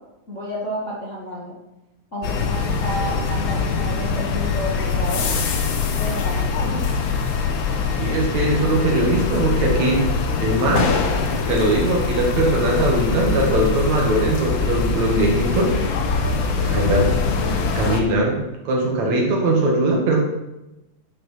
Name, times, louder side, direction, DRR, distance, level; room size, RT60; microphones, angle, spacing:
voice 1, 0.3-1.5 2.1-5.3 5.9-6.9, equal, 30° left, -5 dB, 1.5 m, -30 dB
sound 1, 2.2-18.0, left 4 dB, 75° left, 1.1 m, -23 dB
voice 2, 8.0-10.0 10.4-11.0 11.5-15.8 16.6-17.1 17.7-18.4 18.6-20.2, right 2 dB, 60° right, -1 dB, 3.2 m, -20 dB
10.5 x 6.6 x 5.9 m, 0.97 s
omnidirectional pair, 3.8 m